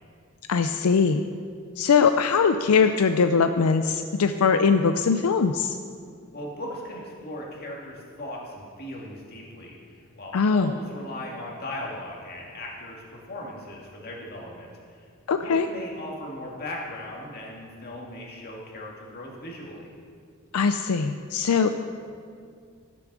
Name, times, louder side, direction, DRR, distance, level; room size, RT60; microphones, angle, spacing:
voice 1, 0.5-1.3 1.8-5.8 10.3-10.7 15.3-15.7 20.5-21.7, left 5 dB, 85° left, 8 dB, 0.4 m, -21 dB
voice 2, 6.3-15.1 15.4-19.9, left 1 dB, 45° left, -2 dB, 2.2 m, -38 dB
13.5 x 7.0 x 6.1 m, 2.2 s
head